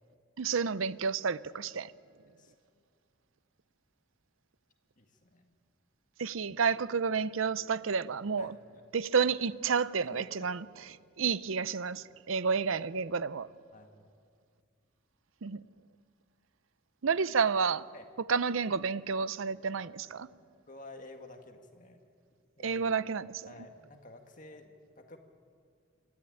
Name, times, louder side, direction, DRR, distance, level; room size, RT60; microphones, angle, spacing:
voice 1, 0.4-1.9 6.2-8.6 8.9-10.6 11.2-13.5 15.4-15.6 17.0-17.8 18.3-20.3 22.6-23.5, right 5 dB, 75° right, 0.6 m, -30 dB
voice 2, 2.3-2.8 5.0-5.5 8.4-9.0 10.0-10.5 13.7-14.1 17.9-18.1 20.7-22.0 22.6-22.8 23.5-25.2, left 2 dB, 40° left, 1.9 m, -51 dB
25.5 x 13.0 x 10.0 m
head